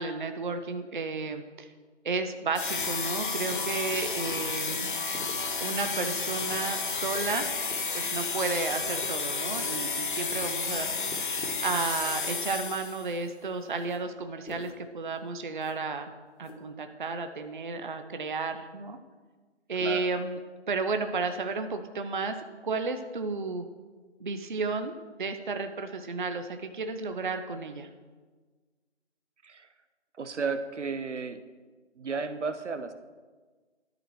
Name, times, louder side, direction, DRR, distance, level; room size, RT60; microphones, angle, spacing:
voice 1, 0.0-1.7 2.0-4.9 5.6-7.5 7.9-10.9 11.6-16.1 16.4-19.0 19.7-20.4 20.7-23.6 24.2-24.9 25.2-27.9, right 4 dB, 45° right, 7 dB, 0.5 m, -32 dB
sound 1, 2.5-13.1, left 4 dB, 45° left, 0.4 m, -32 dB
sound 2, 3.5-3.6 3.9-4.8 5.1-5.3 5.6-5.9 6.2-6.6 6.9-7.2 7.5-7.8 8.1-8.4 8.8-9.1 9.4-9.8 10.2-10.5 10.9-11.6 12.2-12.7 13.0-14.0 14.5-14.8 15.1-15.2 15.6-15.7 16.4-16.5, left 1 dB, 80° left, 1.9 m, -46 dB
voice 2, 30.2-31.4 32.0-32.9, right 4 dB, 80° right, 10 dB, 0.8 m, -33 dB
13.0 x 4.4 x 3.2 m, 1.4 s
figure-of-eight pair, 160°, 35 cm